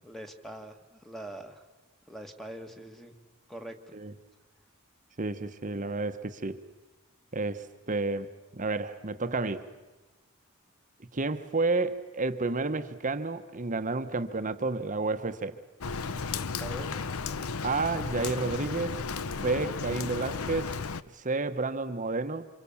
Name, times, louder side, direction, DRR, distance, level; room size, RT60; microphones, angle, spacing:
voice 1, 0.0-1.6 2.1-3.1 3.5-4.0 16.6-17.0, right 1 dB, ahead, 6 dB, 1.6 m, -43 dB
voice 2, 5.2-6.6 7.3-9.6 11.1-15.5 17.6-19.0 19.3-20.7 21.1-22.5, right 3 dB, 35° right, 10 dB, 1.1 m, -31 dB
Rain, 15.8-21.0, left 5 dB, 85° left, 0.8 m, -34 dB
27.5 x 26.0 x 7.2 m, 1.2 s
head